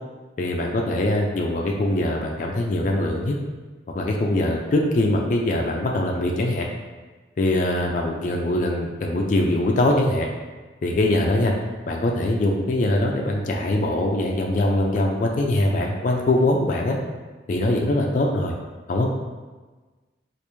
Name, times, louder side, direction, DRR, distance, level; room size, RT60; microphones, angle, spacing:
voice 1, 0.4-3.4 3.9-6.7 7.4-10.3 10.8-11.5 11.9-17.0 17.5-18.5 18.9-19.1, left 1 dB, 45° left, 0 dB, 0.3 m, -22 dB
3.3 x 2.5 x 3.0 m, 1.3 s
head